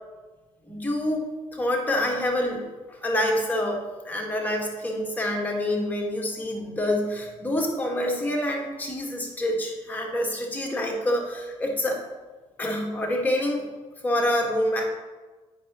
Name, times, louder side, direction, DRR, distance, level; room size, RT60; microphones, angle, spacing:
voice 1, 0.7-2.7 3.0-12.0 12.6-13.7 14.0-14.8, left 1 dB, 15° left, 0 dB, 1.7 m, -27 dB
8.9 x 5.1 x 3.0 m, 1.3 s
supercardioid pair, 80°, 13 cm